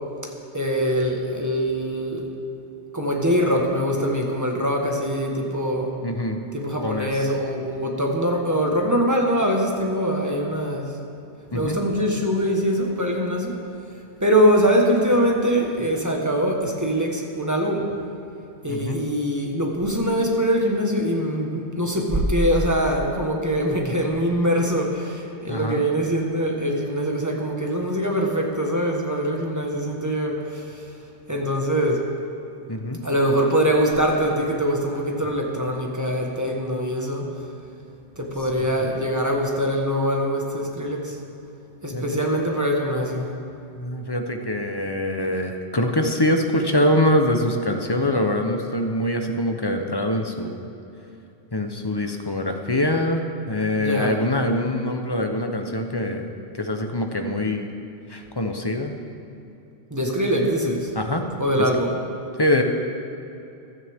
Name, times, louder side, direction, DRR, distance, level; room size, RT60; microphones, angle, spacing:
voice 1, 0.5-2.3 2.9-6.0 6.5-10.9 11.5-13.6 14.2-17.9 18.6-30.8 31.3-32.1 33.0-37.3 38.2-41.2 41.8-43.4 53.8-54.2 59.9-60.9 61.4-61.9, equal, 15° right, 0 dB, 1.4 m, -23 dB
voice 2, 6.0-6.4 6.8-7.3 11.5-11.8 18.7-19.0 25.5-25.8 32.7-33.0 41.9-42.1 43.7-50.7 51.5-57.7 58.1-59.0 60.9-61.3 61.6-61.7 62.4-62.6, left 1 dB, 25° left, 4 dB, 0.8 m, -24 dB
15.5 x 13.0 x 3.6 m, 2.7 s
omnidirectional pair, 1.2 m